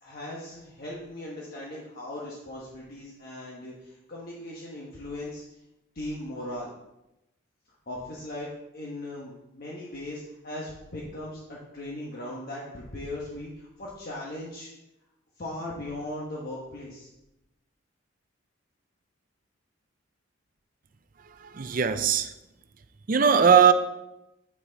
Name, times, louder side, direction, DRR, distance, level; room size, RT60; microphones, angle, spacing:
voice 1, 0.0-5.4 5.9-6.7 7.9-14.7 15.4-17.1, left 1 dB, 50° left, 1.3 m, -38 dB
voice 2, 21.4-22.3 23.1-23.7, right 7 dB, 45° right, 0.5 m, -19 dB
9.3 x 6.1 x 4.0 m
head